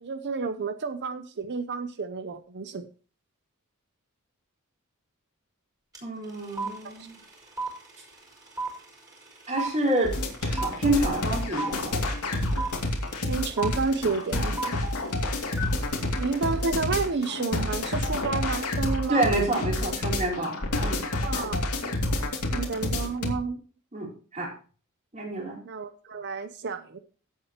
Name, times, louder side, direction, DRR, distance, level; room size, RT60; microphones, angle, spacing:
voice 1, 0.0-2.9 7.0-7.1 13.3-14.7 16.2-19.3 21.0-21.9 22.5-23.6 25.6-27.0, right 4 dB, 50° right, 10 dB, 0.7 m, -30 dB
sound 1, 5.9-6.0 6.2-17.4, right 3 dB, 15° right, 4.8 m, -35 dB
voice 2, 6.0-7.1 9.5-10.1 10.4-12.0 19.1-21.0 23.9-24.5 25.1-25.6, right 1 dB, 35° right, -2 dB, 4.5 m, -28 dB
sound 2, 10.0-23.3, left 1 dB, 85° left, 2.5 m, -28 dB
16.0 x 8.0 x 3.0 m, 0.37 s
head